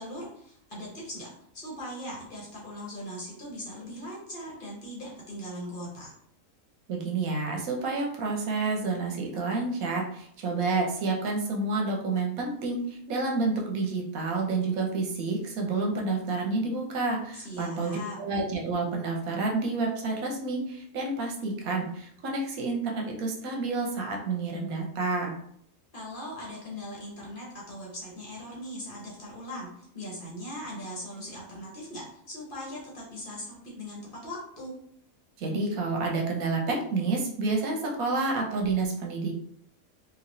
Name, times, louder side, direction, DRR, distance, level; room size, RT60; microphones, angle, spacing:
voice 1, 0.0-6.1 17.3-18.2 25.9-34.7, equal, 40° left, -4 dB, 1.0 m, -40 dB
voice 2, 6.9-25.3 35.4-39.3, right 3 dB, 80° right, 0 dB, 1.2 m, -29 dB
3.1 x 2.6 x 2.6 m, 0.67 s
omnidirectional pair, 1.5 m